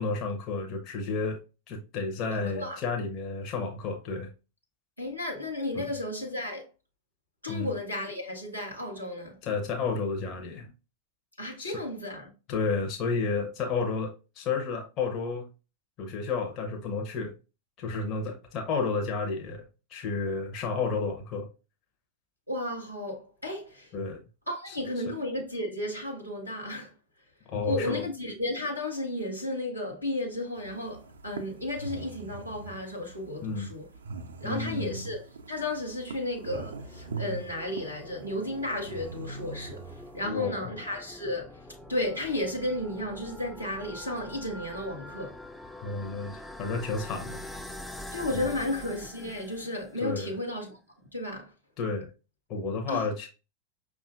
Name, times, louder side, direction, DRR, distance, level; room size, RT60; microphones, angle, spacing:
voice 1, 0.0-1.4 1.7-4.3 5.7-5.9 7.5-7.7 9.4-10.7 11.6-11.8 12.5-15.5 16.0-17.3 17.8-21.5 23.9-24.2 24.7-24.8 27.5-28.1 33.4-33.7 34.4-35.0 40.2-40.8 45.8-47.4 48.4-48.5 50.0-50.3 51.8-52.1 52.5-53.3, left 4 dB, 40° left, 0.7 m, -31 dB
voice 2, 2.3-2.8 5.0-6.7 7.4-9.4 11.4-12.3 22.5-23.9 24.5-26.9 27.6-33.8 34.4-39.8 40.1-41.6 41.9-45.4 48.1-50.8 51.1-51.5 52.9-53.1, left 1 dB, 90° left, 1.0 m, -33 dB
sound 1, 30.6-40.2, right 4 dB, 70° right, 0.4 m, -42 dB
sound 2, 35.9-50.1, left 1 dB, 5° left, 0.3 m, -45 dB
5.3 x 2.4 x 2.4 m
figure-of-eight pair, 90°, 0 cm